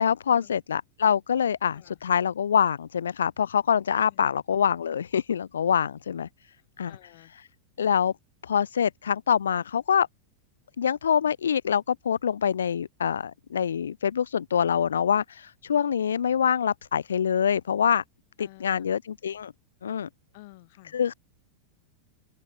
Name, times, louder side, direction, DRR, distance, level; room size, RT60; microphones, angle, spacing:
voice 1, 0.0-6.3 6.8-6.9 7.8-8.1 8.4-10.1 10.8-18.0 18.4-19.5 19.8-20.1 20.9-21.1, left 8 dB, 65° left, 0.5 m, -25 dB
voice 2, 4.0-4.3 6.5-7.3 18.4-18.9 20.3-21.0, left 21 dB, 50° left, 4.1 m, -52 dB
open air
figure-of-eight pair, 90°, 0 cm